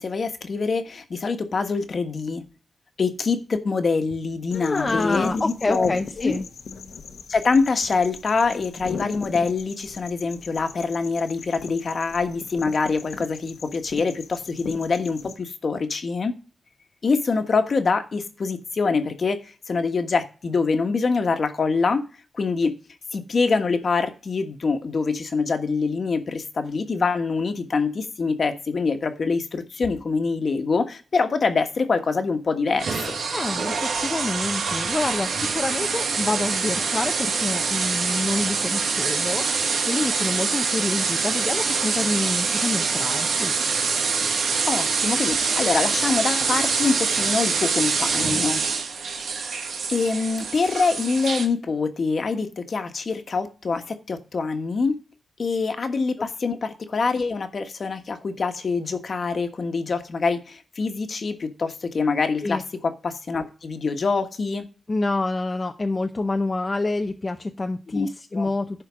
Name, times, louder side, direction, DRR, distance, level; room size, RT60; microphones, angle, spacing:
voice 1, 0.0-2.4 3.0-6.3 7.3-16.3 17.0-22.0 22.3-22.7 23.1-33.2 44.6-48.6 49.9-55.0 55.4-64.7 67.9-68.1 68.3-68.5, left 4 dB, 50° left, 7 dB, 1.3 m, -25 dB
sound 1, 4.5-15.3, left 5 dB, 85° left, 1.2 m, -38 dB
voice 2, 4.5-6.5 33.3-43.6 56.2-56.3 62.4-62.6 64.9-68.8, left 2 dB, 30° left, 5 dB, 0.7 m, -27 dB
sound 2, 32.8-51.4, right 5 dB, 90° right, 1.6 m, -25 dB
11.0 x 4.5 x 6.2 m, 0.35 s
wide cardioid pair, 110°, 0 cm